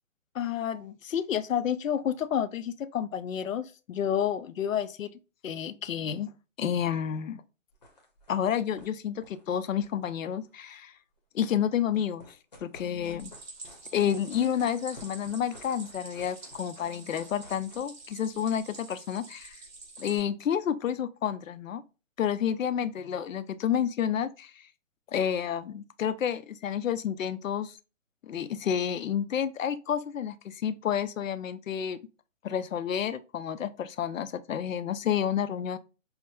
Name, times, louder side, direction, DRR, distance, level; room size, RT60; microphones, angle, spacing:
voice 1, 0.3-5.1 5.4-6.3 6.6-7.4 8.3-10.9 11.3-12.3 12.6-13.4 13.9-19.6 20.0-21.8 22.2-24.7 25.1-27.8 28.2-32.0 32.4-35.8, left 9 dB, 80° left, 0.5 m, -30 dB
sound 1, 7.7-8.5 8.8-8.9 9.2-10.5 11.7-17.8, left 1 dB, 35° left, 0.7 m, -53 dB
Stream, 13.2-20.2, right 3 dB, 50° right, 1.9 m, -47 dB
5.7 x 2.1 x 2.2 m
hypercardioid pair, 170°, 39 cm